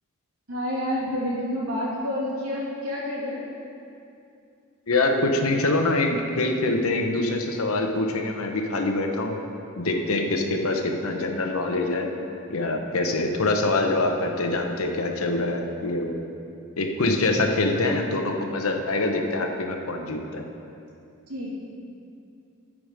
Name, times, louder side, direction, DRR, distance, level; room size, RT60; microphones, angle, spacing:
voice 1, 0.5-3.4 21.3-21.5, left 1 dB, 85° right, -5 dB, 2.4 m, -29 dB
voice 2, 4.9-9.4 9.8-12.1 12.5-16.2 16.8-20.4, left 2 dB, 70° left, 3 dB, 0.9 m, -24 dB
13.5 x 5.0 x 5.1 m, 2.6 s
head